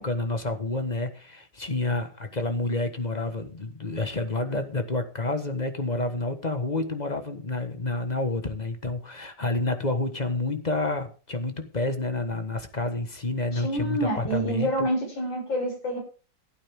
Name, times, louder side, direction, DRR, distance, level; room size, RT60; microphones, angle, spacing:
voice 1, 0.0-14.9, left 2 dB, 25° left, 8 dB, 1.4 m, -29 dB
voice 2, 13.5-16.0, right 1 dB, 85° left, -1 dB, 7.7 m, -27 dB
16.0 x 9.1 x 3.7 m, 0.35 s
omnidirectional pair, 2.0 m